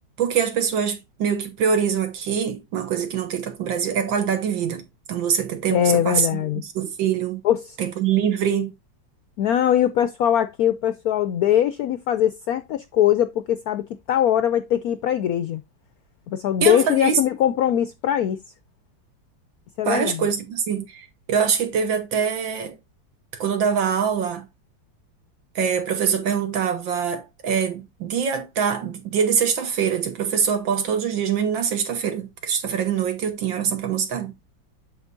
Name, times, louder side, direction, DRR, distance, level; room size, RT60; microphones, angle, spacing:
voice 1, 0.2-4.8 5.1-6.4 6.8-7.4 7.8-8.7 16.6-17.2 19.9-22.8 23.3-24.5 25.6-34.3, right 7 dB, 75° right, 1.8 m, -24 dB
voice 2, 5.7-6.6 7.4-7.8 9.4-15.6 16.3-18.4 19.8-20.3, left 10 dB, 80° left, 0.8 m, -21 dB
8.0 x 6.3 x 2.6 m
omnidirectional pair, 2.1 m